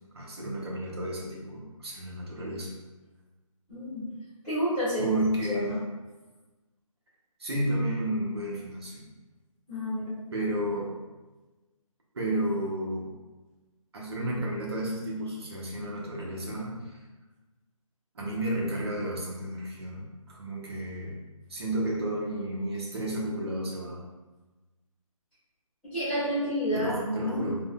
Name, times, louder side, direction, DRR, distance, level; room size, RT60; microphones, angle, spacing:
voice 1, 0.1-2.8 5.0-5.7 7.4-9.0 10.3-10.9 12.1-13.1 13.9-17.0 18.1-21.2 21.5-24.0 26.7-27.6, right 1 dB, 45° right, -4 dB, 0.7 m, -32 dB
voice 2, 3.7-4.1 4.4-5.1 5.5-5.8 9.7-10.1 25.8-27.5, equal, 5° left, -16 dB, 1.1 m, -30 dB
3.6 x 2.0 x 2.3 m, 1.2 s
hypercardioid pair, 170°, 18 cm